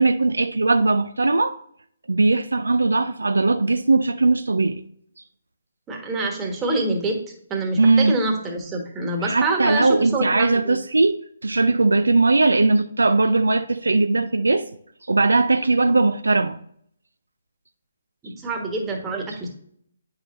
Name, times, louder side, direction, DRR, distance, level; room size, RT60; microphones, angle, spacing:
voice 1, 0.0-1.6 2.1-4.8 7.8-8.1 9.2-14.7 15.1-16.6, right 3 dB, 75° right, 0.4 m, -19 dB
voice 2, 5.9-7.2 7.5-10.8 18.2-19.5, right 2 dB, 15° right, 1.3 m, -26 dB
8.9 x 5.6 x 2.5 m
figure-of-eight pair, 140°, 0 cm